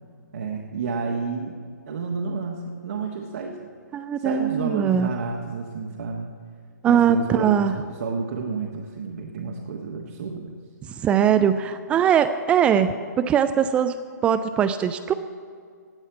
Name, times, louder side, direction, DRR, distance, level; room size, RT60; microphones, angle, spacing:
voice 1, 0.3-1.6 1.9-3.6 4.2-6.3 6.9-10.6, right 4 dB, 50° right, 0 dB, 1.2 m, -30 dB
voice 2, 3.9-5.1 6.8-7.8 11.0-14.0 14.2-15.1, right 8 dB, 10° right, 10 dB, 0.3 m, -21 dB
17.0 x 5.6 x 9.4 m, 2.1 s
figure-of-eight pair, 130°, 10 cm